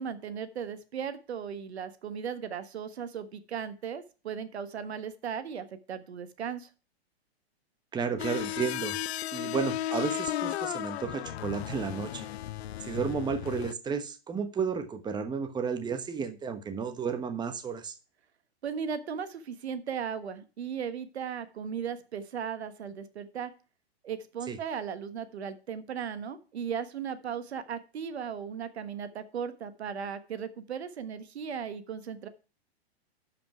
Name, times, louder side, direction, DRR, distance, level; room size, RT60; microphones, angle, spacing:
voice 1, 0.0-6.7 18.6-23.5 24.0-32.3, right 7 dB, 80° right, 12 dB, 1.4 m, -37 dB
voice 2, 7.9-9.0 9.3-12.3 12.8-18.0 24.5-24.6, right 5 dB, 15° right, 9 dB, 1.1 m, -32 dB
sound 1, 8.2-13.7, left 12 dB, 75° left, 0.6 m, -35 dB
11.5 x 5.3 x 4.8 m, 0.34 s
hypercardioid pair, 120°, 32 cm